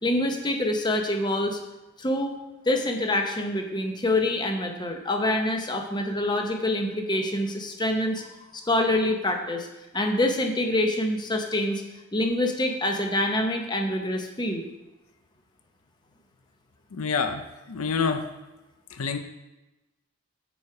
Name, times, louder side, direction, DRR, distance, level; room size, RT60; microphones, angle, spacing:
voice 1, 0.0-1.6 2.0-2.3 2.7-8.3 8.5-9.7 9.9-11.8 12.1-14.7, left 1 dB, 20° left, 3 dB, 0.7 m, -26 dB
voice 2, 16.9-18.3 18.9-19.2, left 5 dB, 85° left, 7 dB, 0.6 m, -27 dB
7.1 x 4.8 x 4.8 m, 1.0 s
head